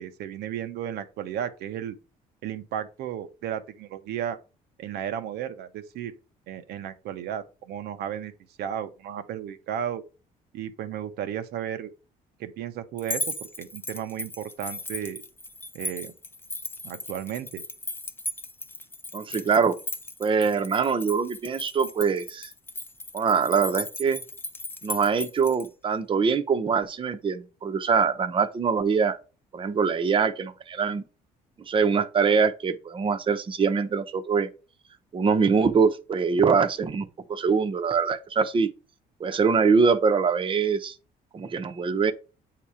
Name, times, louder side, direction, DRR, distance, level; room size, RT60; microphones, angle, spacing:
voice 1, 0.0-2.0 2.4-4.4 4.8-6.1 6.5-8.3 8.6-10.0 10.5-11.9 12.4-15.2 15.7-16.1 16.8-17.6, right 9 dB, 75° right, 0.8 m, -34 dB
sound 1, 13.0-25.7, left 1 dB, 15° left, 0.6 m, -37 dB
voice 2, 19.1-19.8 20.2-22.5 23.1-24.2 24.8-29.2 29.5-31.0 31.7-34.5 35.1-38.7 39.2-40.9 41.3-42.1, right 5 dB, 30° right, 0.8 m, -23 dB
8.2 x 2.9 x 4.9 m
cardioid pair, 110°, 17 cm